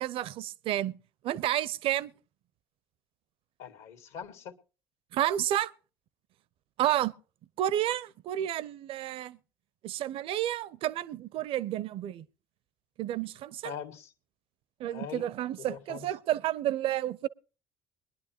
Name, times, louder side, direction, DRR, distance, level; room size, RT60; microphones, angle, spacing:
voice 1, 0.0-0.9 1.2-2.1 5.1-5.7 6.8-7.1 7.6-9.4 9.8-12.3 13.0-13.7 14.8-17.3, right 12 dB, 55° right, 0.6 m, -30 dB
voice 2, 3.6-4.6 13.6-14.1 14.8-15.3 15.6-16.1, left 8 dB, 65° left, 1.8 m, -42 dB
22.5 x 10.5 x 2.9 m
hypercardioid pair, 65°, 11 cm